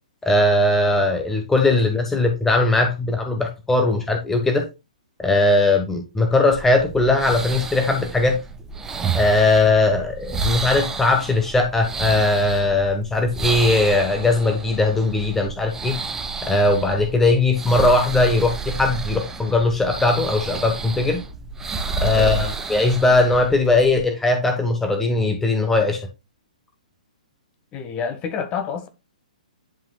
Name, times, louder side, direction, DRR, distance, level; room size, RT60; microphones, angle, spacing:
voice 1, 0.2-4.7 5.2-8.4 9.1-15.9 16.4-21.2 22.0-26.0, left 2 dB, 5° left, 1.3 m, -19 dB
sound 1, 6.5-24.0, right 4 dB, 10° right, 1.1 m, -30 dB
voice 2, 22.1-22.5 27.7-28.9, left 6 dB, 25° left, 1.5 m, -28 dB
11.0 x 5.4 x 2.3 m
figure-of-eight pair, 120°, 4 cm